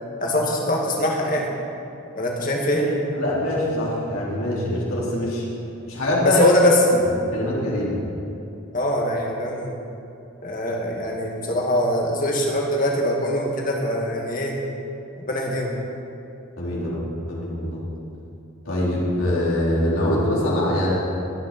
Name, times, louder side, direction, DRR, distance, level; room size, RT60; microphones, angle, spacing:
voice 1, 0.2-1.5 2.1-2.8 6.2-6.8 8.7-9.8 10.4-14.5 15.2-15.7, left 1 dB, 40° left, -1 dB, 2.2 m, -23 dB
voice 2, 3.2-5.4 5.9-6.4 7.3-8.0 16.6-17.0 17.3-17.8 18.7-20.9, left 1 dB, 75° left, -6 dB, 4.0 m, -23 dB
22.5 x 10.0 x 4.5 m, 2.8 s
head